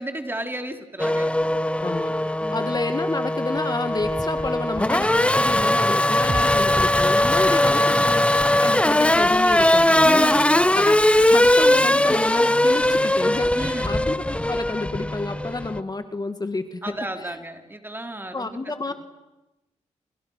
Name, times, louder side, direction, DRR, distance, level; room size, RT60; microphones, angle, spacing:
voice 1, 0.0-1.3 2.4-2.8 7.3-8.0 10.0-10.6 13.5-14.0 16.8-18.9, right 1 dB, 15° right, 5 dB, 3.6 m, -33 dB
Race car auto racing / Accelerating revving vroom, 1.0-15.8, left 1 dB, 10° left, 1.0 m, -20 dB
voice 2, 1.8-2.1 2.5-8.3 8.6-10.3 10.7-16.8 17.2-17.4 18.3-18.9, left 3 dB, 30° left, 9 dB, 1.9 m, -30 dB
sound 1, 6.3-10.2 10.5-10.6, right 3 dB, 35° right, 2.3 m, -39 dB
29.5 x 28.5 x 6.5 m, 1.0 s
cardioid pair, 65°, 13 cm